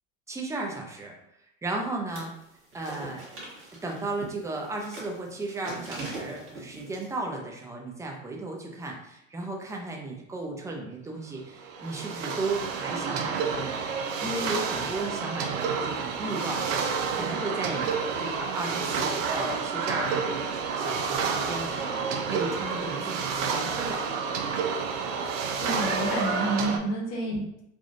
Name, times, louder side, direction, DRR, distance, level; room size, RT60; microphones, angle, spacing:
voice 1, 0.3-1.1 1.6-2.3 2.7-3.2 3.8-13.8 14.2-24.0 26.7-26.8, right 2 dB, 10° right, 0 dB, 0.5 m, -35 dB
sound 1, 2.1-2.4 2.7-7.0, right 2 dB, 30° right, 1.3 m, -41 dB
sound 2, 11.6-26.8, right 5 dB, 70° right, 0.5 m, -29 dB
voice 2, 25.6-27.6, right 2 dB, 40° left, -1 dB, 1.1 m, -29 dB
3.5 x 2.3 x 2.5 m, 0.80 s
hypercardioid pair, 85°, 40 cm